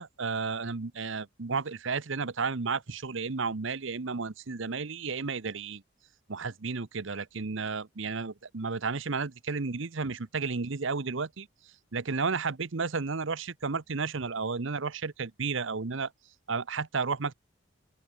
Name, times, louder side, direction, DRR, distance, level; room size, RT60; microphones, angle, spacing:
voice 1, 0.0-5.8 6.3-11.5 11.9-16.1 16.5-17.3, right 4 dB, 65° right, 0.9 m, -32 dB
open air
head